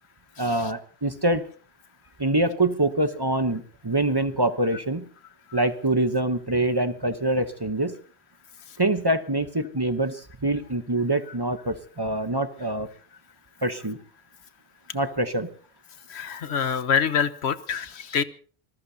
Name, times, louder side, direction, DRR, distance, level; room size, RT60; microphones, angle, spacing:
voice 1, 0.4-1.5 2.2-5.0 5.5-7.9 8.8-12.9 13.6-14.0 14.9-15.5, right 1 dB, 25° right, 10 dB, 0.9 m, -25 dB
voice 2, 16.1-18.2, left 7 dB, 85° left, 13 dB, 1.2 m, -25 dB
26.0 x 19.5 x 2.8 m, 0.42 s
omnidirectional pair, 1.1 m